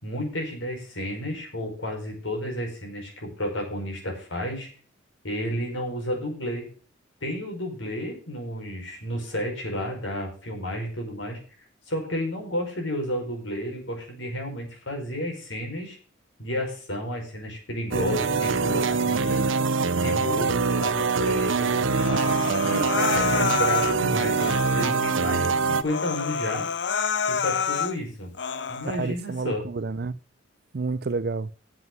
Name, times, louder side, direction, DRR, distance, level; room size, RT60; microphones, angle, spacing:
voice 1, 0.0-4.7 5.2-6.7 7.2-11.4 11.9-16.0 16.4-19.5 19.9-26.7 27.3-28.3 28.7-29.6, equal, 80° left, 5.4 m, -31 dB
sound 1, 17.9-25.8, right 4 dB, 90° right, 0.7 m, -24 dB
Human voice, 21.9-24.0 24.4-25.0 25.4-25.5 25.8-27.9 28.3-28.9, left 6 dB, 65° left, 0.6 m, -28 dB
voice 2, 28.9-30.2 30.7-31.5, right 4 dB, 55° right, 0.5 m, -29 dB
7.9 x 7.7 x 7.6 m
head